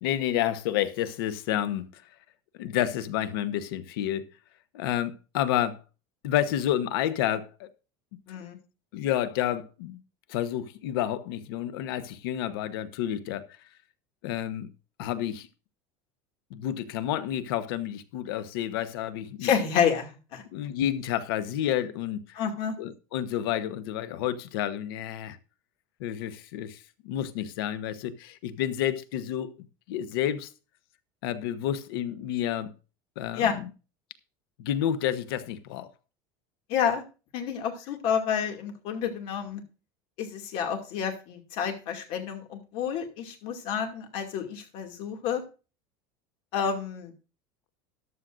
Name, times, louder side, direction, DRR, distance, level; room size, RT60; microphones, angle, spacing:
voice 1, 0.0-2.0 2.6-4.3 4.7-5.8 6.2-7.7 8.9-10.0 10.3-13.5 14.2-14.7 15.0-15.5 16.5-19.5 20.5-22.4 22.8-25.4 26.0-30.5 31.2-32.7 33.2-33.7 34.6-35.9, left 11 dB, 80° left, 1.0 m, -30 dB
voice 2, 19.4-20.4 22.3-22.8 33.3-33.5 36.7-37.0 37.3-39.6 40.2-45.4 46.5-47.1, left 7 dB, 50° left, 2.5 m, -29 dB
14.0 x 11.5 x 2.6 m
cardioid pair, 165°, 12 cm